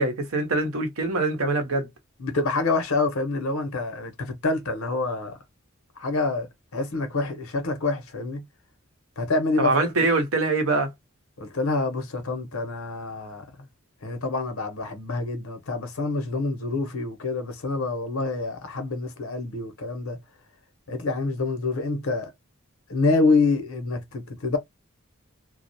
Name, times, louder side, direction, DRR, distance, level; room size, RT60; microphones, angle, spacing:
voice 1, 0.0-1.9 9.6-10.9, right 3 dB, 85° right, 0.8 m, -23 dB
voice 2, 2.2-5.3 6.0-6.5 6.7-8.4 9.2-9.9 11.4-13.4 14.0-20.2 20.9-22.3 22.9-24.6, left 3 dB, 85° left, 0.8 m, -26 dB
2.3 x 2.0 x 2.6 m
head